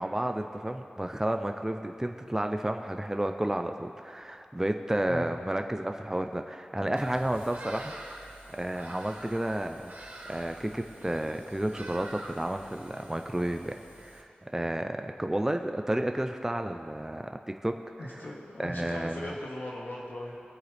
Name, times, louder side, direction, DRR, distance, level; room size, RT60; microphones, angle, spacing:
voice 1, 0.0-7.9 8.2-17.8 18.6-19.4, right 1 dB, 15° right, 5 dB, 0.6 m, -32 dB
Bird vocalization bird call bird song, 6.9-14.2, right 1 dB, 65° right, 1.6 m, -46 dB
voice 2, 18.0-20.4, left 1 dB, 75° left, -5 dB, 2.1 m, -39 dB
22.0 x 7.9 x 3.5 m, 2.5 s
wide cardioid pair, 65°, 3 cm